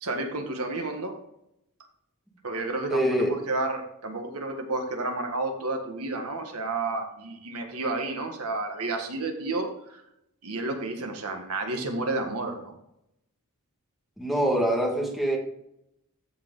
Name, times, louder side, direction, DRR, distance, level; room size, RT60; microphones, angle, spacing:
voice 1, 0.0-1.1 2.4-10.0 10.4-12.7, right 2 dB, 80° right, 3 dB, 1.7 m, -31 dB
voice 2, 2.9-3.4 14.2-15.4, right 1 dB, ahead, -1 dB, 1.7 m, -24 dB
14.0 x 4.8 x 3.9 m, 0.78 s
head